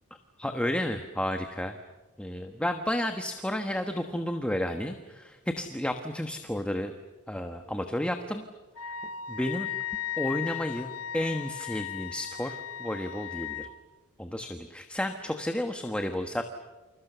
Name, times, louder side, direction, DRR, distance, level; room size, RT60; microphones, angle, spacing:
voice 1, 0.4-1.8 2.2-6.9 7.3-8.4 9.3-9.7 10.2-13.7 14.2-16.4, left 1 dB, 5° left, 6 dB, 1.3 m, -32 dB
Wind instrument woodwind instrument, 8.8-13.7, left 11 dB, 75° left, 1.7 m, -36 dB
29.5 x 27.0 x 6.9 m, 1.2 s
head